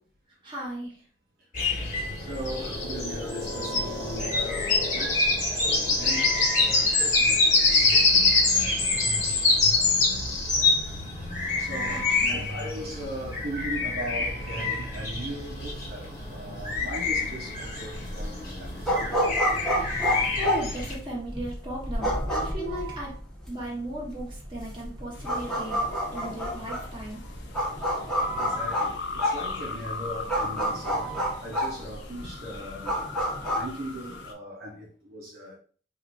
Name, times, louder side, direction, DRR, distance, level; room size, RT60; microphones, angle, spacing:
voice 1, 0.4-1.0 2.6-2.9 11.9-12.7 14.8-14.9 20.2-23.1 23.5-25.8 26.1-27.2 29.7-29.8, equal, 25° right, 1.3 m, -37 dB
sound 1, 1.5-20.9, left 3 dB, 45° left, 1.4 m, -26 dB
voice 2, 2.2-10.1 10.6-10.7 11.6-19.1 19.9-20.4 22.4-23.0 27.9-33.0 33.5-35.6, right 1 dB, 55° right, 0.8 m, -39 dB
sound 2, 17.8-33.6, equal, 5° left, 1.1 m, -29 dB
sound 3, 25.1-34.3, left 4 dB, 75° left, 0.7 m, -38 dB
4.5 x 2.6 x 2.6 m
head